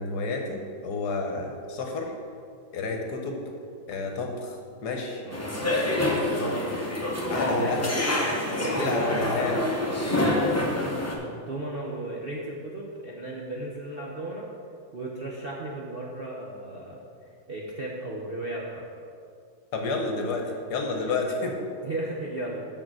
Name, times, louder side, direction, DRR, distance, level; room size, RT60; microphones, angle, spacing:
voice 1, 0.0-2.1 2.7-3.4 3.9-4.6 4.8-5.2 5.8-6.5 7.3-7.8 8.7-9.6 19.7-21.5, left 3 dB, 65° left, 2 dB, 1.4 m, -30 dB
voice 2, 5.2-5.6 7.3-7.7 8.5-9.2 9.5-9.7 10.1-14.4 14.9-17.0 17.5-18.9 21.0-21.2 21.8-22.7, right 2 dB, 50° right, -4 dB, 0.7 m, -35 dB
sound 1, 5.3-11.1, left 1 dB, 15° left, 0.5 m, -26 dB
6.6 x 6.5 x 6.1 m, 2.4 s
omnidirectional pair, 2.1 m